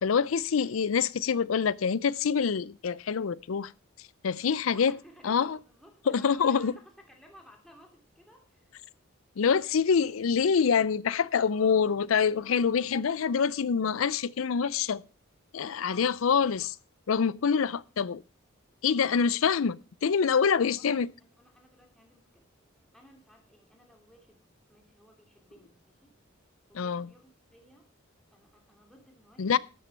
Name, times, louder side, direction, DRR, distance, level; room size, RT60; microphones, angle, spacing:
voice 1, 0.0-3.7 4.2-4.9 5.2-5.6 6.1-6.7 9.4-15.0 15.5-16.7 17.1-18.2 18.8-21.1 26.7-27.1 29.4-29.6, left 6 dB, 85° left, 0.5 m, -26 dB
voice 2, 4.7-8.7 15.7-16.1 16.5-16.7 20.4-22.5 22.9-26.1 26.7-27.9 28.3-29.6, equal, ahead, 2.7 m, -56 dB
13.0 x 7.5 x 5.3 m
head